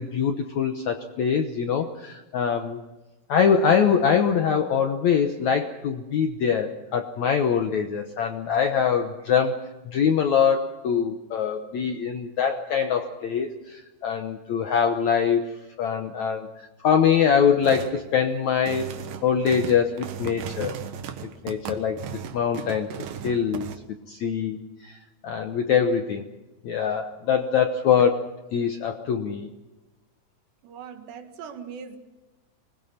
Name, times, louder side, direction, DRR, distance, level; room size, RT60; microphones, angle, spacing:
voice 1, 0.0-2.8 3.3-9.6 9.8-15.4 15.8-18.9 19.2-20.7 21.4-22.0 22.3-22.9 23.2-23.7 24.1-25.0 25.2-26.3 26.6-28.2 28.5-29.5, left 7 dB, 75° left, 6 dB, 1.7 m, -23 dB
sound 1, 17.6-18.0 18.5-23.8, right 7 dB, 65° right, 2.6 m, -36 dB
voice 2, 30.6-32.0, right 7 dB, 85° right, 6 dB, 4.1 m, -40 dB
25.5 x 20.5 x 5.8 m, 1.1 s
omnidirectional pair, 4.8 m